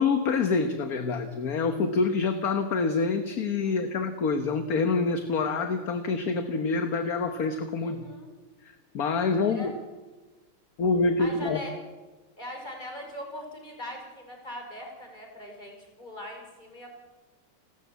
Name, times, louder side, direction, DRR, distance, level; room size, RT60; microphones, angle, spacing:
voice 1, 0.0-8.1 8.6-9.7 10.8-11.6, left 4 dB, 50° left, 8 dB, 1.5 m, -26 dB
voice 2, 3.6-3.9 7.8-8.3 9.4-9.7 11.2-11.7 12.4-16.9, left 1 dB, 20° left, 2 dB, 5.3 m, -41 dB
30.0 x 13.5 x 8.2 m, 1.2 s
omnidirectional pair, 2.4 m